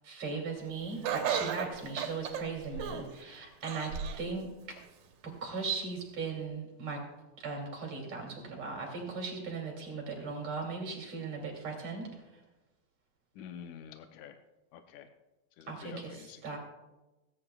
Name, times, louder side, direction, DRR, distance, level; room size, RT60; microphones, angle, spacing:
voice 1, 0.0-4.8 5.2-7.0 7.4-12.4 15.7-16.6, right 4 dB, 50° right, 0 dB, 3.7 m, -38 dB
Laughter, 1.0-3.2 3.6-4.3 4.8-4.9 5.8-5.9, right 8 dB, 85° right, 2.9 m, -34 dB
voice 2, 13.4-14.4 14.7-15.1 15.6-16.6, left 8 dB, 75° left, 6 dB, 1.8 m, -48 dB
30.0 x 10.0 x 2.3 m, 1.1 s
omnidirectional pair, 3.9 m